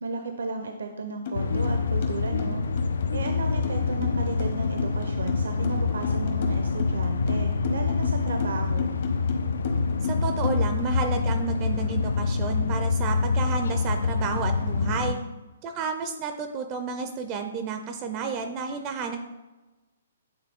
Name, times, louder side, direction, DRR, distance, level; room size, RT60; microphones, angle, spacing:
voice 1, 0.0-2.6 3.1-8.9 14.8-15.3, right 3 dB, 90° right, 5 dB, 0.6 m, -34 dB
sound 1, 1.3-15.1, left 4 dB, 80° left, 0.4 m, -26 dB
sound 2, 1.3-1.4 1.6-10.8, left 4 dB, 45° left, 1.0 m, -32 dB
voice 2, 10.0-15.2 15.6-19.2, right 5 dB, 20° right, 7 dB, 0.4 m, -31 dB
8.8 x 3.7 x 3.5 m, 1.1 s
hypercardioid pair, 165°, 0 cm